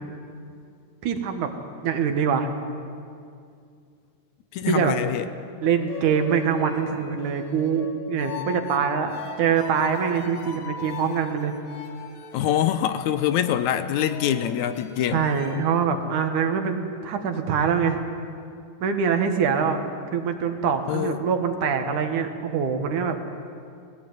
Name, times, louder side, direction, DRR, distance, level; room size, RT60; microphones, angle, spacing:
voice 1, 1.0-1.5 1.8-2.5 4.7-5.0 5.6-11.5 15.1-18.0 18.8-19.8 20.1-23.2, right 6 dB, 75° right, 6 dB, 2.9 m, -24 dB
voice 2, 4.5-5.3 12.3-15.3 20.9-21.2, left 10 dB, 80° left, 11 dB, 2.1 m, -24 dB
sound 1, 5.6-15.7, left 7 dB, 60° left, 2.2 m, -39 dB
20.0 x 17.0 x 9.3 m, 2.3 s
omnidirectional pair, 3.5 m